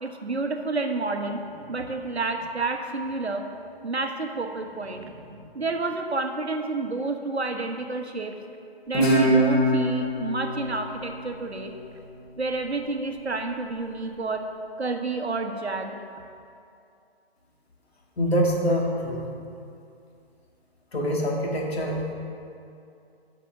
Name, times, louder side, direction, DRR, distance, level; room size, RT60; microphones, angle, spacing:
voice 1, 0.0-3.5 3.8-8.3 8.9-11.7 12.4-14.5 14.8-15.9, right 3 dB, 90° right, 5 dB, 1.1 m, -30 dB
Guitar, 8.9-12.2, right 1 dB, 25° left, 2.0 m, -24 dB
voice 2, 18.2-19.3 20.9-22.1, equal, 75° left, -1 dB, 2.0 m, -25 dB
8.3 x 6.0 x 6.1 m, 2.5 s
figure-of-eight pair, 140°, 32 cm